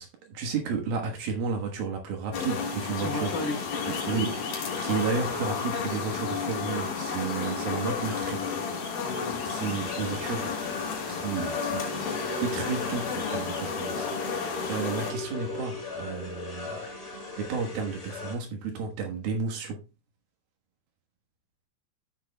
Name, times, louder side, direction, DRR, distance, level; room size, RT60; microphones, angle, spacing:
voice 1, 0.0-3.3 3.9-8.5 9.5-10.5 11.1-19.8, right 5 dB, 70° right, 3.1 m, -33 dB
sound 1, 2.3-15.1, left 5 dB, 70° left, 3.9 m, -32 dB
voice 2, 3.0-4.5 9.0-9.5, left 2 dB, 50° left, 3.5 m, -35 dB
Talking Treated Brushes, 9.5-18.3, left 3 dB, 20° left, 4.8 m, -37 dB
14.5 x 6.6 x 2.2 m
omnidirectional pair, 4.5 m